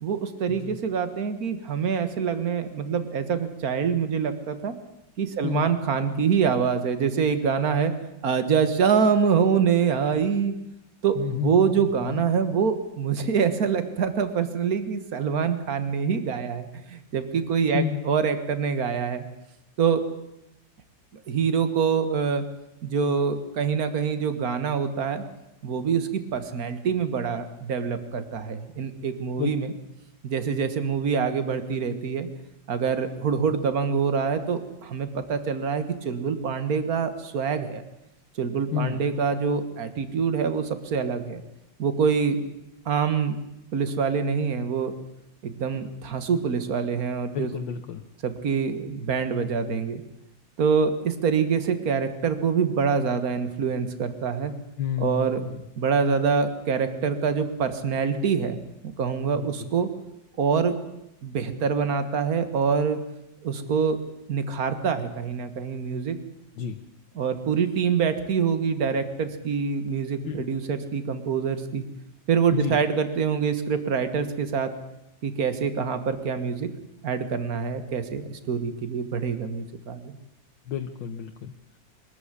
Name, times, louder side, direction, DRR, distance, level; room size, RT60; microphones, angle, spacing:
voice 1, 0.0-4.8 5.2-7.9 8.2-10.6 11.0-19.2 19.8-20.0 21.3-22.4 22.8-25.2 25.6-29.7 30.2-32.3 32.7-37.8 38.4-41.4 41.8-42.4 42.9-43.4 43.7-44.9 45.4-47.5 48.2-50.0 50.6-54.5 55.0-55.4 55.8-58.6 58.8-59.9 60.4-60.7 61.2-63.0 63.4-64.0 64.3-66.2 67.2-71.9 72.3-74.7 75.2-76.7 77.0-80.2, right 6 dB, 50° right, 10 dB, 2.0 m, -25 dB
voice 2, 5.4-5.8 11.2-12.2 17.7-18.0 29.4-29.5 38.7-39.1 47.3-48.0 54.8-55.6 59.4-59.7 66.6-66.8 70.2-70.5 72.5-72.8 80.7-81.8, left 9 dB, 85° left, 4 dB, 1.8 m, -31 dB
23.0 x 13.5 x 9.7 m, 0.88 s
omnidirectional pair, 2.0 m